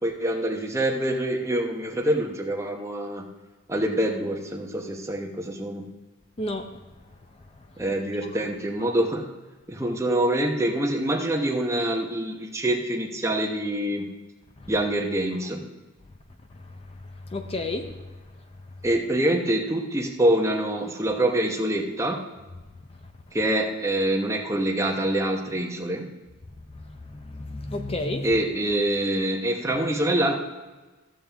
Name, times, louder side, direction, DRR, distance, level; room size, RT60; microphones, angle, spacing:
voice 1, 0.0-3.2 3.7-5.8 7.8-9.3 9.7-14.0 14.7-15.7 18.8-22.2 23.3-26.1 28.2-30.4, right 1 dB, 15° right, 2 dB, 0.8 m, -25 dB
voice 2, 6.4-6.8 7.6-7.7 8.2-8.3 14.6-14.7 16.5-18.0 23.0-23.1 26.7-28.3, left 2 dB, 30° left, 5 dB, 0.6 m, -33 dB
14.0 x 7.3 x 3.4 m, 1.2 s
head